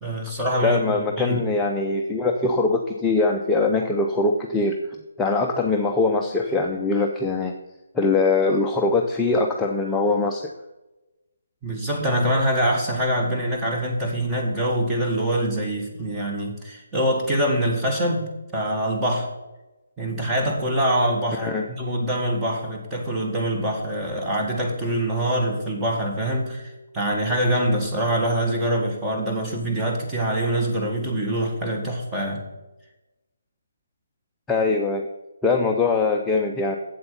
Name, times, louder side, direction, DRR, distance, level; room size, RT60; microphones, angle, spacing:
voice 1, 0.0-1.4 11.6-19.3 20.0-32.5, right 1 dB, 10° right, -2 dB, 1.8 m, -24 dB
voice 2, 0.6-4.8 5.2-7.5 7.9-10.5 21.4-21.7 34.5-35.1 35.4-36.8, left 3 dB, 10° left, 1 dB, 0.6 m, -22 dB
7.9 x 7.8 x 5.6 m, 1.0 s
figure-of-eight pair, 145°, 0 cm